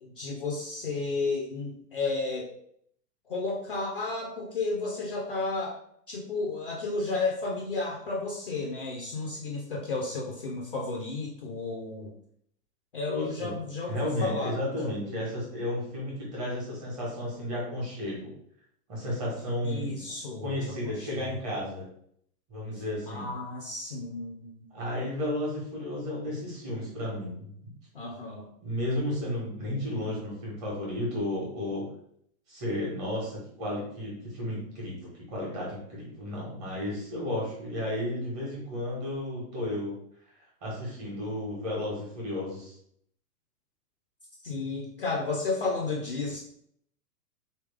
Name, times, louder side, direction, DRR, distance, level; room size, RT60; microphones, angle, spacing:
voice 1, 0.0-2.5 3.3-5.8 6.1-12.1 12.9-15.0 19.6-21.8 22.7-24.7 27.9-28.5 44.4-46.4, left 3 dB, 40° left, -1 dB, 0.4 m, -33 dB
voice 2, 13.1-13.5 13.9-18.3 18.9-20.0 20.4-21.9 22.5-23.3 24.7-27.5 28.6-31.9 32.5-39.9 40.6-42.7, left 1 dB, 25° right, -4 dB, 1.5 m, -33 dB
4.1 x 3.4 x 3.5 m, 0.68 s
supercardioid pair, 180°, 47 cm